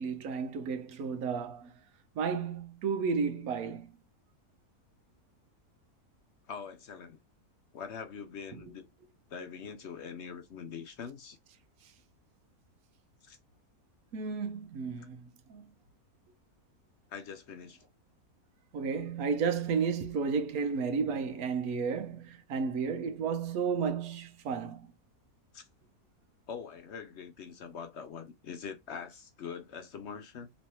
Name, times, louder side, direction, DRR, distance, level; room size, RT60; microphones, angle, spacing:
voice 1, 0.0-1.7 2.1-3.9 8.5-8.6 14.1-15.7 18.7-24.9, right 5 dB, 70° right, 1.2 m, -32 dB
voice 2, 6.5-7.2 7.7-8.8 9.3-11.4 13.2-13.4 17.1-17.9 25.5-25.7 26.5-30.5, left 6 dB, 60° left, 0.7 m, -43 dB
3.3 x 3.0 x 4.2 m
omnidirectional pair, 1.6 m